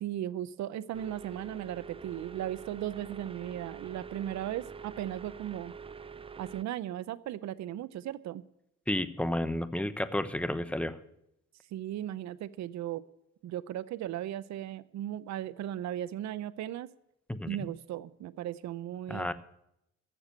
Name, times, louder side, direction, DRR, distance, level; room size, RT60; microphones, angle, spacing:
voice 1, 0.0-5.7 6.4-8.4 11.7-13.0 13.4-16.9 17.5-19.3, right 12 dB, 65° right, 15 dB, 0.6 m, -37 dB
sound 1, 0.9-6.6, right 5 dB, 20° right, 0.5 m, -46 dB
voice 2, 8.9-10.9 17.3-17.6 19.1-19.3, left 1 dB, 5° left, 12 dB, 0.9 m, -31 dB
14.5 x 6.8 x 9.1 m, 0.80 s
cardioid pair, 90°, 30 cm